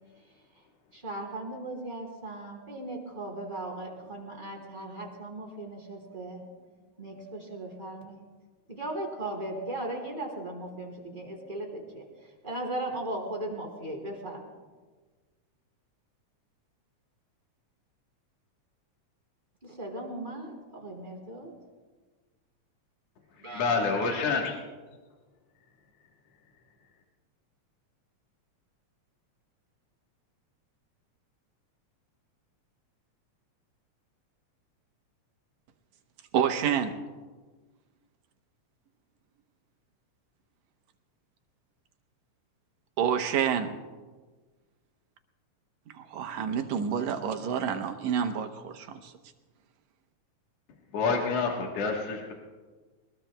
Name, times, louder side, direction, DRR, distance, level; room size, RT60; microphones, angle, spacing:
voice 1, 0.9-6.5 7.0-8.2 8.7-14.4 19.6-21.5 23.4-24.4, right 1 dB, 15° right, -2 dB, 3.2 m, -38 dB
voice 2, 23.5-24.5 50.9-52.3, left 4 dB, 60° left, 0 dB, 2.4 m, -27 dB
voice 3, 36.3-37.0 43.0-43.7 46.0-49.0, right 8 dB, 75° right, 5 dB, 2.2 m, -28 dB
22.0 x 20.5 x 2.3 m, 1.4 s
omnidirectional pair, 3.3 m